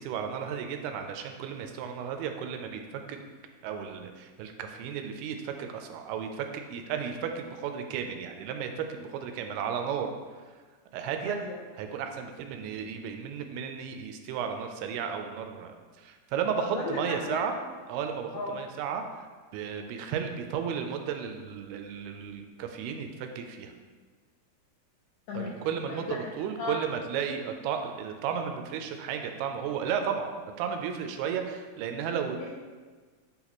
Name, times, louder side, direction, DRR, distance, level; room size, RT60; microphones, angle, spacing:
voice 1, 0.0-2.8 3.1-3.2 3.6-10.1 10.9-11.4 11.8-17.5 17.9-19.3 19.5-23.7 25.3-30.3 30.6-32.4, right 7 dB, 85° right, 5 dB, 2.5 m, -34 dB
voice 2, 11.3-11.6 16.6-17.4 18.3-18.6 25.3-25.6 25.9-26.3 26.6-26.8 32.4-32.5, left 3 dB, 80° left, -4 dB, 1.9 m, -35 dB
8.5 x 4.0 x 2.9 m, 1.4 s
omnidirectional pair, 4.5 m